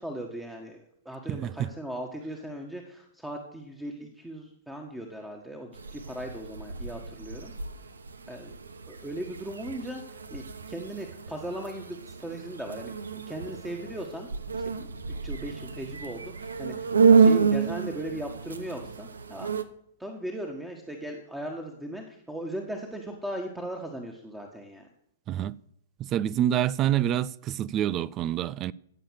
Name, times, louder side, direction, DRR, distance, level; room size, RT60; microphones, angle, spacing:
voice 1, 0.0-7.5 8.3-8.5 8.9-14.9 15.2-16.9 17.2-19.5 20.0-24.9, right 1 dB, 5° right, 1.6 m, -38 dB
sound 1, 5.7-19.6, right 5 dB, 75° right, 1.0 m, -28 dB
voice 2, 25.3-25.6 26.0-28.7, right 11 dB, 30° right, 0.4 m, -27 dB
16.5 x 7.0 x 6.5 m
figure-of-eight pair, 105°, 0 cm